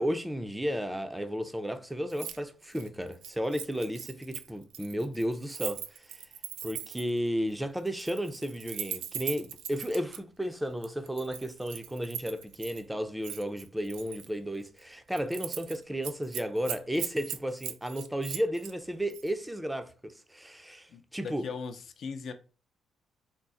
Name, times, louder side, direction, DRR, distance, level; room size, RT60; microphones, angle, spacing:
voice 1, 0.0-6.2 6.6-21.4, equal, 5° right, 0.5 m, -33 dB
Keys jangling, 2.1-2.4 2.7-7.2 7.9-10.2 10.8-12.8 13.2-14.3 14.7-14.8 15.1-15.8 16.0-18.7 19.1-19.3, right 9 dB, 90° right, 0.3 m, -40 dB
voice 2, 20.9-22.3, left 5 dB, 60° left, 0.5 m, -39 dB
3.6 x 2.0 x 4.0 m
cardioid pair, 90°, 0 cm